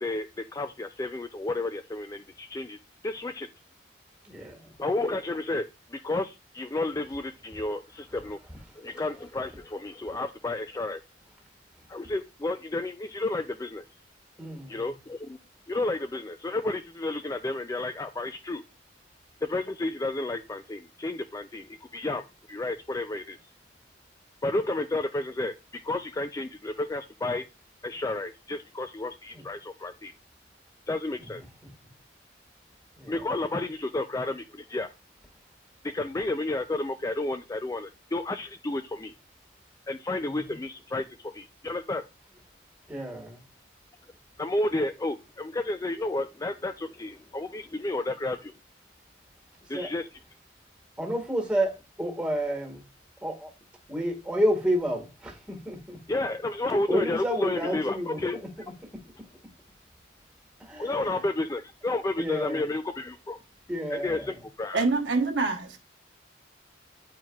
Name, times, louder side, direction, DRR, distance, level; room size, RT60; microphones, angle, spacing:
voice 1, 0.0-2.8 3.0-3.5 4.8-8.4 8.8-11.0 11.9-13.9 14.7-15.4 15.7-18.6 19.4-23.4 24.4-27.4 27.8-30.1 30.9-31.4 33.1-34.9 35.8-39.1 39.9-42.0 44.4-48.5 49.7-50.1 56.1-58.4 60.8-63.4 63.9-64.8, left 2 dB, 15° left, 0.3 m, -31 dB
voice 2, 4.2-4.7 14.4-14.8 29.3-29.4 31.6-31.7 33.0-33.3 40.2-40.6 42.9-43.4 49.7-49.9 51.0-52.8 53.2-53.5 53.9-56.0 56.7-58.5 60.6-61.1 62.2-62.6 63.7-64.3, equal, 5° right, 1.6 m, -30 dB
voice 3, 64.7-65.8, right 3 dB, 65° right, 1.0 m, -25 dB
9.1 x 4.5 x 2.3 m
head